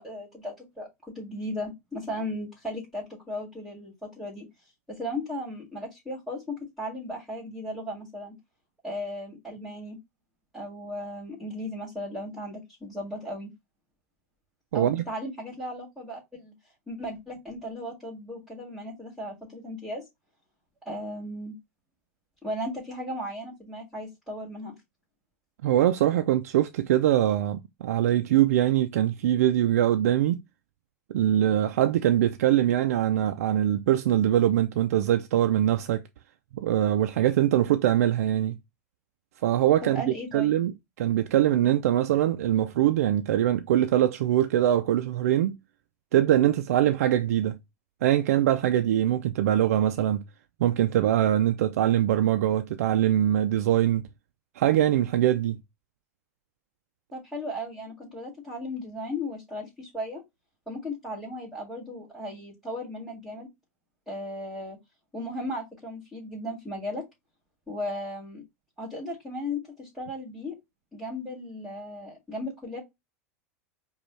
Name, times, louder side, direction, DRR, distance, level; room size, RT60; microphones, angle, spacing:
voice 1, 0.0-4.5 4.9-8.4 8.8-10.0 10.5-13.5 14.7-16.5 16.9-20.0 20.8-21.6 22.4-24.8 39.8-40.6 57.1-60.2 60.7-63.5 64.1-64.8 65.1-67.0 67.7-68.4 68.8-70.6 70.9-72.8, left 1 dB, ahead, 2.0 m, -36 dB
voice 2, 14.7-15.0 25.6-30.4 31.1-36.0 36.5-38.6 39.4-40.7 41.0-45.6 46.1-47.6 48.0-50.2 50.6-54.0 54.6-55.6, right 12 dB, 80° right, 0.3 m, -23 dB
5.1 x 2.3 x 3.2 m
hypercardioid pair, 100°, 8 cm